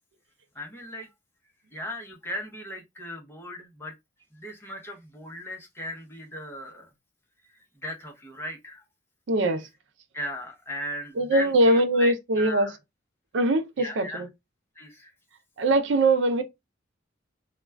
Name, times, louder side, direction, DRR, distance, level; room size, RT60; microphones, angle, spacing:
voice 1, 0.5-1.1 1.7-3.9 4.3-6.9 7.5-8.8 10.1-12.8 13.8-14.2 14.8-15.1, left 1 dB, 15° left, 0.7 m, -37 dB
voice 2, 9.3-9.7 11.2-12.7 13.3-14.3 15.6-16.4, right 1 dB, 75° right, 0.5 m, -22 dB
2.2 x 2.2 x 3.2 m
head